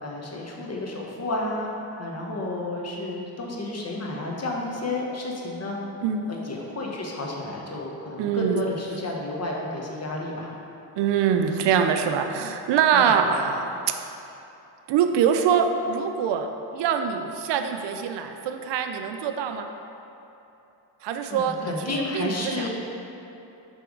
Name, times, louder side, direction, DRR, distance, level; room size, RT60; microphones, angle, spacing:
voice 1, 0.0-5.8 6.3-10.5 12.9-13.1 21.3-22.7, left 2 dB, 35° left, -1 dB, 1.1 m, -31 dB
voice 2, 8.2-8.6 11.0-14.0 14.9-16.5 16.7-19.7 21.0-21.7 22.1-22.7, right 7 dB, 65° right, 6 dB, 0.5 m, -24 dB
5.8 x 3.4 x 4.8 m, 2.9 s
supercardioid pair, 60°, 47 cm